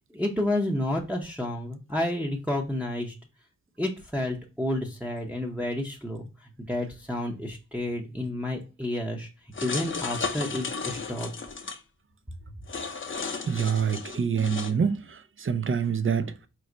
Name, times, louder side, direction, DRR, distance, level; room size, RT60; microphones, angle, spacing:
voice 1, 0.1-3.1 3.8-9.3 9.6-11.3, left 1 dB, 5° right, 0.7 m, -30 dB
sound 1, 9.5-11.8 12.7-14.7, left 4 dB, 40° left, 0.6 m, -34 dB
voice 2, 13.5-16.5, right 6 dB, 40° right, 0.5 m, -26 dB
4.7 x 2.1 x 3.8 m
cardioid pair, 50°, 33 cm